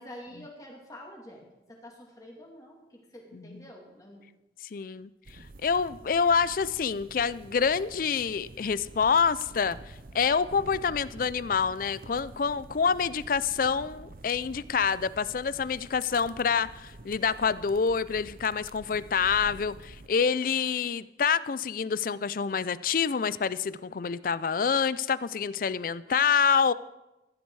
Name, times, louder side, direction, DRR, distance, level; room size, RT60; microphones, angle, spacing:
voice 1, 0.0-1.4 1.7-4.2, left 1 dB, 20° left, -1 dB, 2.5 m, -47 dB
voice 2, 3.3-3.7 4.6-26.7, left 6 dB, 50° left, 18 dB, 0.4 m, -27 dB
sound 1, 5.2-20.1, right 2 dB, 50° right, 0.6 m, -48 dB
14.5 x 11.5 x 4.7 m, 0.99 s
head